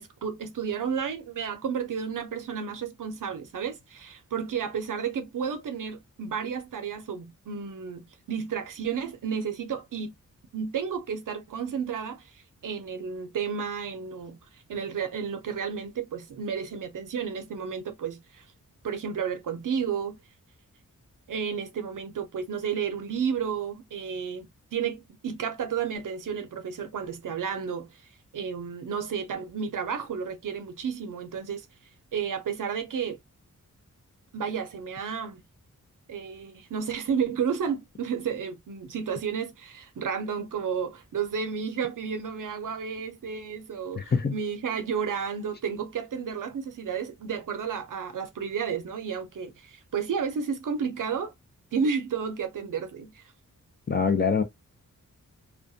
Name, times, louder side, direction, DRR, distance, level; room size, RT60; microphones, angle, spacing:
voice 1, 0.0-10.1 10.5-18.4 18.8-20.2 21.3-28.0 28.3-31.7 32.1-33.2 34.3-35.4 36.1-51.3 51.7-53.3, right 6 dB, 70° right, 0.6 m, -32 dB
voice 2, 43.9-44.3 53.9-54.4, left 5 dB, 30° left, 0.5 m, -24 dB
2.3 x 2.2 x 2.6 m
wide cardioid pair, 150°, 33 cm